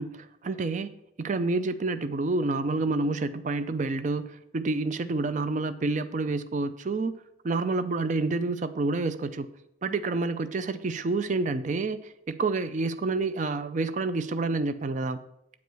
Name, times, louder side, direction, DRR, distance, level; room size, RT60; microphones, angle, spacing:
voice 1, 0.0-7.2 7.4-9.5 9.8-15.2, right 3 dB, 40° right, 13 dB, 0.4 m, -28 dB
8.3 x 4.7 x 6.7 m, 0.81 s
head